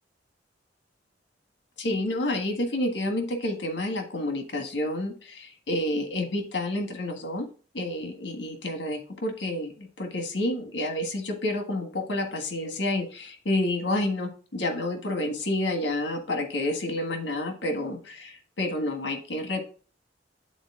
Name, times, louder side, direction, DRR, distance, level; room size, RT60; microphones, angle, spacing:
voice 1, 1.8-7.4 7.7-19.6, left 1 dB, 80° left, 4 dB, 1.5 m, -29 dB
10.0 x 4.0 x 3.6 m, 0.40 s
head